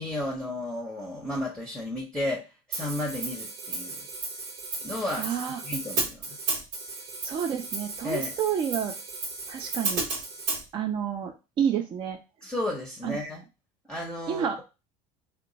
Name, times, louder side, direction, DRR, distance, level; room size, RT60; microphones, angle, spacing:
voice 1, 0.0-4.0 4.8-6.5 8.0-8.3 12.4-13.4 13.9-14.5, left 1 dB, 5° left, -2 dB, 0.7 m, -33 dB
Hi-hat, 2.7-10.6, right 3 dB, 80° right, 1.2 m, -34 dB
voice 2, 5.2-5.6 7.2-8.9 9.5-10.1 10.7-12.2 13.0-13.2 14.3-14.6, right 8 dB, 35° right, 4 dB, 0.4 m, -29 dB
2.9 x 2.2 x 3.9 m, 0.28 s
supercardioid pair, 125°, 15 cm